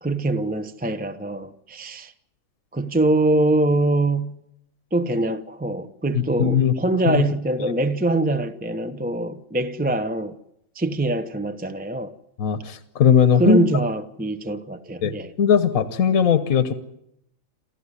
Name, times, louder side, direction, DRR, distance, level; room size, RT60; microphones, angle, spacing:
voice 1, 0.0-2.1 2.7-4.4 4.9-10.4 10.7-12.1 13.3-15.3, right 2 dB, 10° right, 0.6 m, -23 dB
voice 2, 6.1-6.7 7.0-7.2 12.4-13.6 15.0-16.7, left 7 dB, 75° left, 1.5 m, -19 dB
28.5 x 14.5 x 9.8 m
omnidirectional pair, 1.5 m